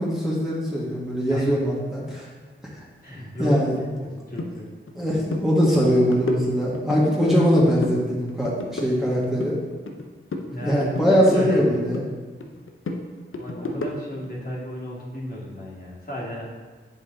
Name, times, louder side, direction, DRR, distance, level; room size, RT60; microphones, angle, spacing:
voice 1, 0.0-2.3 3.4-3.7 5.0-9.6 10.6-12.0, equal, ahead, -7 dB, 1.9 m, -21 dB
voice 2, 3.0-4.7 10.5-10.8 11.3-11.6 13.4-16.5, left 1 dB, 45° left, -7 dB, 2.3 m, -33 dB
sound 1, 4.4-4.5 4.9-5.0 5.3-5.5 5.8-7.0 7.4-8.0 8.3-10.0 10.3-12.1 12.4-14.3, left 2 dB, 75° left, 0.8 m, -33 dB
7.7 x 5.4 x 4.0 m, 1.4 s
wide cardioid pair, 60°, 21 cm